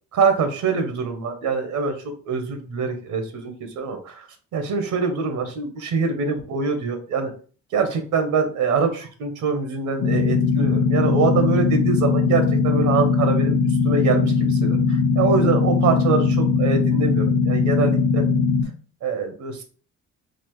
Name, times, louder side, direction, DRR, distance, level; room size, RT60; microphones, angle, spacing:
voice 1, 0.1-2.0 2.2-4.3 4.5-7.3 7.7-13.6 13.8-18.2 19.0-19.6, right 5 dB, 75° right, 6 dB, 1.0 m, -24 dB
sound 1, 10.0-18.6, left 4 dB, 45° left, 0.8 m, -20 dB
4.2 x 2.4 x 3.0 m, 0.39 s
cardioid pair, 90°, 30 cm